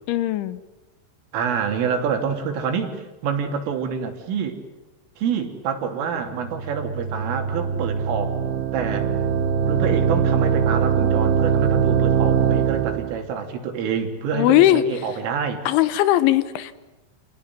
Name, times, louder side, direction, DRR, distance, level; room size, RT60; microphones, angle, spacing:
voice 1, 0.1-0.6 14.3-14.8 15.7-16.8, left 14 dB, 75° left, 15 dB, 3.3 m, -19 dB
voice 2, 1.3-4.6 5.2-8.4 8.7-9.1 9.7-15.6, right 6 dB, 80° right, 5 dB, 5.5 m, -27 dB
sound 1, 6.3-13.2, right 7 dB, 65° right, 3.0 m, -22 dB
28.5 x 19.0 x 9.4 m, 1.1 s
omnidirectional pair, 5.7 m